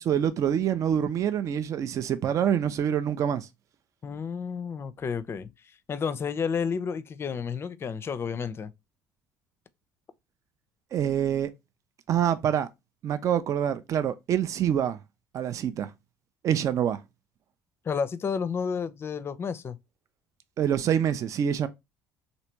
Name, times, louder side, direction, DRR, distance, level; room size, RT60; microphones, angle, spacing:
voice 1, 0.1-3.5 10.9-11.5 12.1-12.7 13.0-15.0 15.3-15.9 16.4-17.0 20.6-21.7, right 9 dB, 50° right, 0.4 m, -26 dB
voice 2, 4.0-5.5 5.9-8.7 17.8-19.8, left 6 dB, 35° left, 0.5 m, -31 dB
3.2 x 2.7 x 2.9 m
hypercardioid pair, 70°, 7 cm